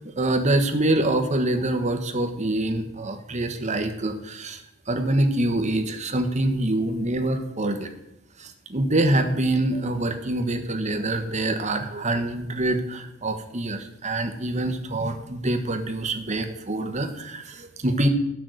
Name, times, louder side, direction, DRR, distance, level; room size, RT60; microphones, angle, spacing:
voice 1, 0.2-4.6 4.9-7.9 8.4-18.1, right 1 dB, 35° right, 6 dB, 1.3 m, -25 dB
13.0 x 5.8 x 7.7 m, 0.87 s
head